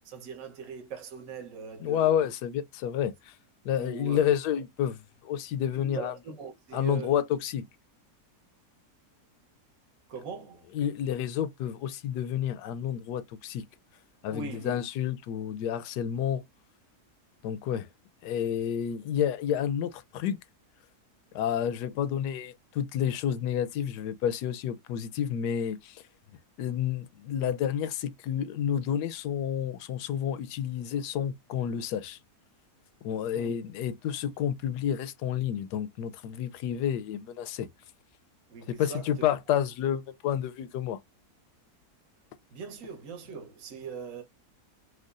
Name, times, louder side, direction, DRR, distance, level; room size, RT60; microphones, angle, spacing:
voice 1, 0.0-2.3 3.8-4.6 5.8-7.1 10.1-10.6 14.3-14.8 33.3-33.6 38.5-39.3 42.5-44.2, right 6 dB, 60° right, 1.3 m, -41 dB
voice 2, 1.8-3.3 3.6-6.1 6.7-7.7 10.7-13.7 14.2-16.4 17.4-17.9 18.2-20.4 21.3-26.0 26.6-32.2 33.0-37.7 38.7-41.0, left 9 dB, 85° left, 1.2 m, -30 dB
4.6 x 2.3 x 2.5 m
omnidirectional pair, 1.7 m